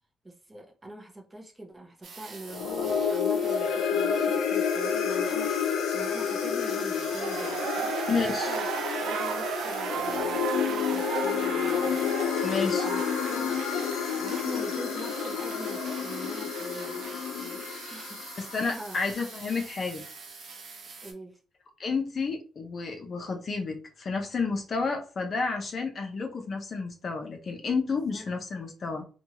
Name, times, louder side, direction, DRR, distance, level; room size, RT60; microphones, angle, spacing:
voice 1, 0.2-7.9 8.3-8.7 9.0-12.1 12.6-13.0 13.3-13.7 14.1-18.2 18.7-19.1 21.0-21.4 28.1-28.3, right 1 dB, 20° right, 0.7 m, -43 dB
sound 1, 2.0-21.1, right 4 dB, 65° right, 0.8 m, -45 dB
sound 2, 2.4-18.9, left 7 dB, 85° left, 0.5 m, -30 dB
sound 3, 6.8-17.7 17.9-18.0, right 7 dB, 80° right, 0.4 m, -35 dB
voice 2, 8.1-8.5 12.4-12.9 18.4-20.0 21.8-29.0, left 4 dB, 45° left, 0.6 m, -31 dB
2.7 x 2.3 x 2.8 m
cardioid pair, 90°, 0 cm